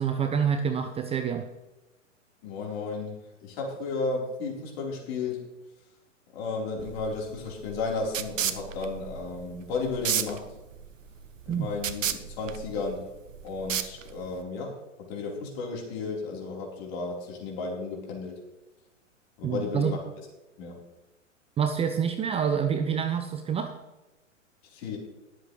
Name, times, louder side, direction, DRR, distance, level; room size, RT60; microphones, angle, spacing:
voice 1, 0.0-1.5 11.5-11.7 19.4-19.9 21.6-23.7, right 7 dB, 15° right, 7 dB, 0.6 m, -27 dB
voice 2, 2.4-3.2 3.4-5.5 6.3-10.5 11.5-13.1 13.4-18.4 19.4-20.0 20.6-20.8 24.7-25.0, left 4 dB, 50° left, -1 dB, 4.1 m, -33 dB
sound 1, 6.8-14.4, right 9 dB, 75° right, 1.0 m, -34 dB
21.0 x 7.7 x 3.2 m, 1.1 s
hypercardioid pair, 110°, 39 cm